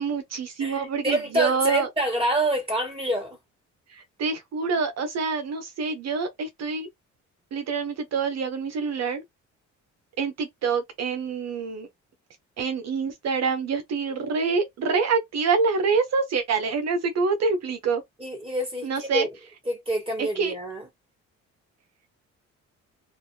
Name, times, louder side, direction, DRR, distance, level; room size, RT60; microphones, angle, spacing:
voice 1, 0.0-1.9 3.9-6.9 7.5-9.2 10.2-11.9 12.6-18.0 18.8-19.3 20.2-20.5, right 5 dB, 60° right, 0.8 m, -26 dB
voice 2, 0.6-3.4 18.2-19.3 19.7-20.9, right 1 dB, 20° right, 2.0 m, -27 dB
3.3 x 2.5 x 2.7 m
cardioid pair, 90°, 30 cm